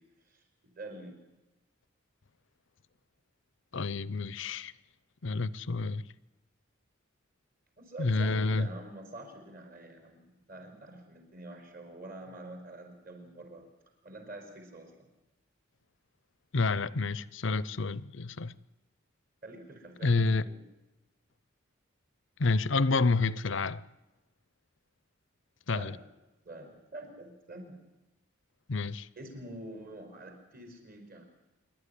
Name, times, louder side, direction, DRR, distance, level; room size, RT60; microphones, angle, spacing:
voice 1, 0.8-1.1 7.8-13.7 14.0-14.9 19.4-20.6 25.7-26.0 26.4-27.8 29.2-31.2, right 1 dB, 45° right, 4.9 m, -46 dB
voice 2, 3.7-4.7 5.2-6.0 8.0-8.7 16.5-18.5 20.0-20.4 22.4-23.8 25.7-25.9 28.7-29.1, left 3 dB, 65° left, 0.7 m, -29 dB
26.5 x 12.0 x 10.0 m
head